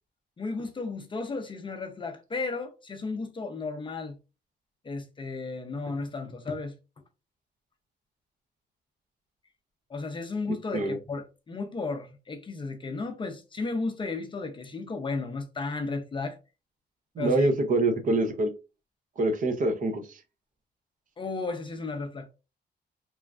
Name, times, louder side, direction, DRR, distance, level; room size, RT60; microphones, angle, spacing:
voice 1, 0.4-4.2 4.8-6.7 9.9-16.4 17.2-17.5 21.2-22.3, left 3 dB, 25° left, 0.4 m, -34 dB
voice 2, 17.2-18.5 19.2-20.0, right 2 dB, 45° right, 0.6 m, -25 dB
3.0 x 2.3 x 2.4 m
cardioid pair, 130°, 18 cm